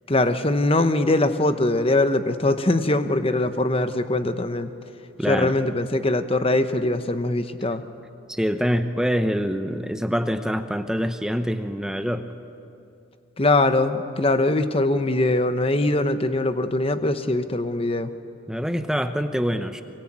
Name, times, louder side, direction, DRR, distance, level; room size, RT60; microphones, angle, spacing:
voice 1, 0.1-4.7 5.3-7.8 13.4-18.1, left 2 dB, 25° left, 10 dB, 1.0 m, -22 dB
voice 2, 5.2-5.6 8.3-12.3 18.5-19.8, equal, 5° right, 8 dB, 0.8 m, -25 dB
24.0 x 22.5 x 8.9 m, 2.7 s
head